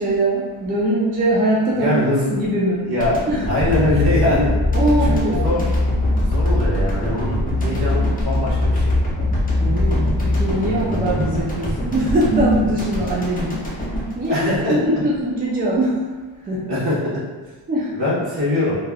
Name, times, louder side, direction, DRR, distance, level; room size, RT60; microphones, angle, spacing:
voice 1, 0.0-1.9 2.3-2.9 3.3-3.5 4.7-5.5 7.6-7.8 9.5-16.7 17.7-17.9, right 1 dB, 20° right, -5 dB, 0.3 m, -22 dB
voice 2, 1.8-2.3 2.8-3.2 3.5-4.5 5.0-5.6 6.2-8.9 14.3-14.8 16.7-17.1 17.9-18.7, left 1 dB, 50° right, -7 dB, 1.2 m, -22 dB
sound 1, 3.0-15.2, equal, 15° left, 0.7 m, -26 dB
sound 2, 3.7-11.4, left 2 dB, 80° left, 0.6 m, -22 dB
3.2 x 2.3 x 2.3 m, 1.3 s
wide cardioid pair, 120°, 49 cm